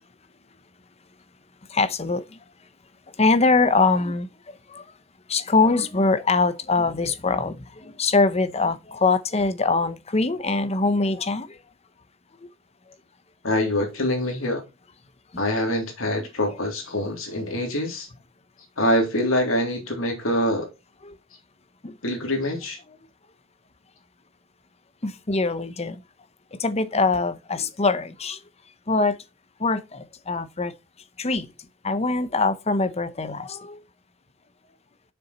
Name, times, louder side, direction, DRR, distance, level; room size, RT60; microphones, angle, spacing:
voice 1, 1.7-2.2 3.2-4.3 4.7-4.8 5.3-11.6 16.1-16.3 21.0-21.2 21.8-21.9 25.0-26.0 26.6-28.4 28.9-29.2 29.6-30.7 31.2-31.5 31.8-33.8, left 3 dB, 30° left, 0.8 m, -23 dB
voice 2, 13.4-14.6 15.4-18.1 18.8-20.7 22.0-22.8, left 1 dB, 85° left, 3.4 m, -25 dB
7.0 x 6.8 x 4.3 m
head